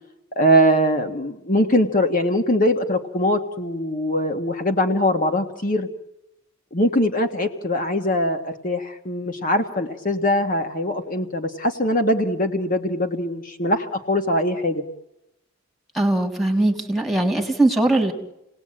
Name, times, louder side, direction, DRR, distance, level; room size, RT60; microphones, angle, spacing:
voice 1, 0.3-5.9 6.7-14.8, equal, 40° left, 6 dB, 1.6 m, -22 dB
voice 2, 15.9-18.1, right 2 dB, ahead, 2 dB, 3.1 m, -20 dB
29.5 x 19.0 x 8.8 m, 0.89 s
head